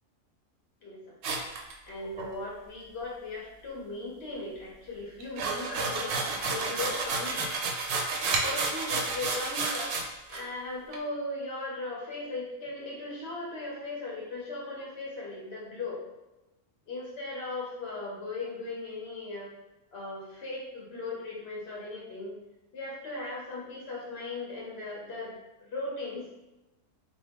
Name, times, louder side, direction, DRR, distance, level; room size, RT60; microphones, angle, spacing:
voice 1, 0.8-1.4 1.9-7.5 8.4-16.0 16.9-19.5 19.9-22.4 22.7-26.3, left 2 dB, 50° left, -4 dB, 1.2 m, -38 dB
sound 1, 1.2-2.3 5.2-10.0 10.3-10.4 10.9-11.0, right 3 dB, 65° right, 0.7 m, -31 dB
3.2 x 2.3 x 3.6 m, 1.0 s
omnidirectional pair, 1.4 m